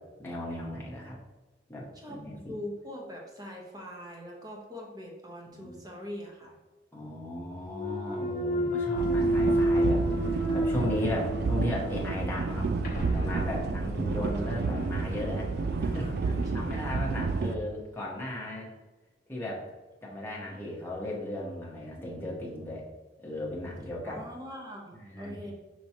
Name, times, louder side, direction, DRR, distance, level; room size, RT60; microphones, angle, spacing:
voice 1, 0.2-1.2 1.7-2.5 5.5-5.8 6.9-12.7 13.1-15.5 15.8-16.1 16.5-18.7 19.3-19.6 20.0-22.8 23.2-24.2 25.0-25.5, left 1 dB, 10° left, -4 dB, 1.0 m, -36 dB
voice 2, 1.9-6.6 16.2-17.1 24.0-25.5, left 1 dB, 20° right, -1 dB, 1.0 m, -42 dB
Thump thud, 7.7-11.7 12.2-16.8, right 1 dB, 45° left, 0.7 m, -31 dB
sound 1, 9.0-17.6, right 3 dB, 55° right, 0.3 m, -30 dB
5.7 x 3.0 x 2.8 m, 1.2 s
head